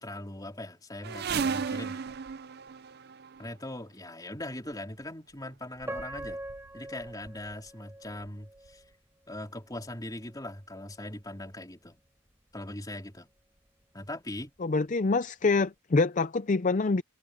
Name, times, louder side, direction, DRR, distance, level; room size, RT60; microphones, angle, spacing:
voice 1, 0.0-2.2 3.4-6.4 6.7-8.8 9.3-12.0 12.5-13.3 13.9-14.5, left 1 dB, 15° left, 3.9 m, -40 dB
sound 1, 1.0-3.5 4.5-4.7 5.5-5.6 5.8-6.7 7.0-7.5 8.2-8.3 8.7-8.8, right 5 dB, 50° right, 0.5 m, -35 dB
Piano, 5.8-8.9 9.4-9.5 10.2-10.4, right 1 dB, 10° right, 4.7 m, -42 dB
voice 2, 14.6-17.0, left 3 dB, 35° left, 0.5 m, -25 dB
head